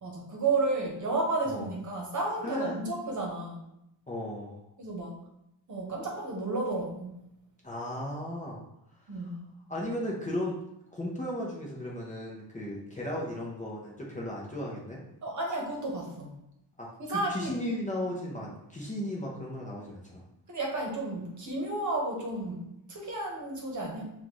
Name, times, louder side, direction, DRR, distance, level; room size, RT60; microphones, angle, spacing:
voice 1, 0.0-3.6 4.8-5.1 5.7-7.1 9.1-9.4 15.2-16.3 17.0-17.5 20.5-24.1, right 2 dB, 40° right, -1 dB, 1.1 m, -32 dB
voice 2, 2.4-2.8 4.1-4.6 7.6-8.6 9.7-10.6 10.9-15.0 16.8-20.2, left 1 dB, 15° left, -4 dB, 0.7 m, -35 dB
5.7 x 2.6 x 3.0 m, 0.83 s
wide cardioid pair, 150°, 44 cm